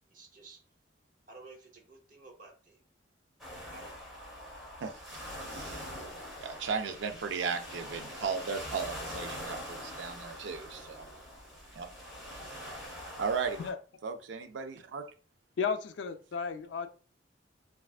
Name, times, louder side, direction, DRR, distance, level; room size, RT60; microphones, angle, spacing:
voice 1, 0.1-0.6 1.3-2.8 3.7-4.1, right 3 dB, 45° right, 2 dB, 0.7 m, -53 dB
sound 1, 3.4-13.7, equal, ahead, 1.0 m, -43 dB
voice 2, 4.8-5.7 6.4-11.1 11.8-11.9 13.2-13.6 14.0-15.0, right 5 dB, 85° right, 8 dB, 0.4 m, -36 dB
voice 3, 15.6-16.9, left 6 dB, 75° left, 9 dB, 0.4 m, -33 dB
3.2 x 2.4 x 2.3 m, 0.38 s
head